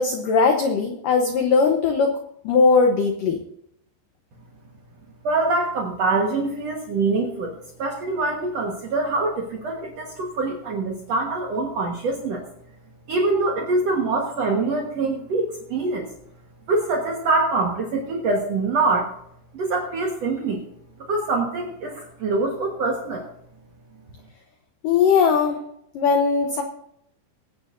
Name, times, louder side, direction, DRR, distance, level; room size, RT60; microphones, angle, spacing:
voice 1, 0.0-2.1 2.4-3.4 24.8-25.6 25.9-26.6, left 5 dB, 85° left, 4 dB, 1.9 m, -19 dB
voice 2, 5.2-12.4 13.1-16.1 16.7-19.1 19.5-20.6 21.0-23.3, right 3 dB, 80° right, 0 dB, 1.4 m, -24 dB
22.5 x 9.3 x 2.6 m, 0.73 s
omnidirectional pair, 5.4 m